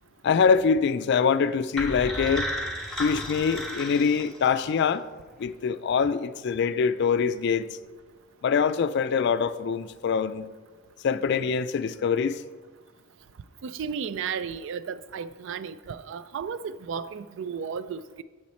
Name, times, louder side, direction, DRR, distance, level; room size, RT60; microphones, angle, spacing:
voice 1, 0.2-2.5 3.0-5.0 5.4-7.7 8.4-10.5 11.0-12.4, left 6 dB, 60° left, 0.3 m, -24 dB
sound 1, 1.8-4.8, equal, 5° left, 1.1 m, -33 dB
voice 2, 13.6-18.2, right 6 dB, 70° right, 0.3 m, -34 dB
7.2 x 6.4 x 4.2 m
head